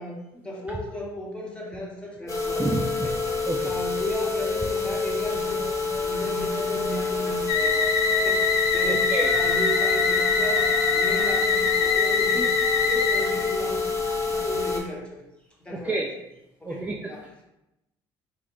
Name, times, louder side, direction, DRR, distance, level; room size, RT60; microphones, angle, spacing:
voice 1, 0.0-2.7 3.0-3.2 3.6-7.7 8.1-12.5 12.8-15.2 15.6-16.3 16.6-17.3, equal, 10° left, -3 dB, 1.0 m, -35 dB
sound 1, 2.3-14.8, left 4 dB, 30° left, 1.0 m, -27 dB
voice 2, 2.6-3.1 3.5-3.7 8.9-9.3 15.8-16.1 16.7-16.9, right 2 dB, 15° right, 0 dB, 0.4 m, -28 dB
sound 2, 7.5-13.5, left 5 dB, 75° left, 0.4 m, -23 dB
3.6 x 2.2 x 3.8 m, 0.90 s
cardioid pair, 95°, 11 cm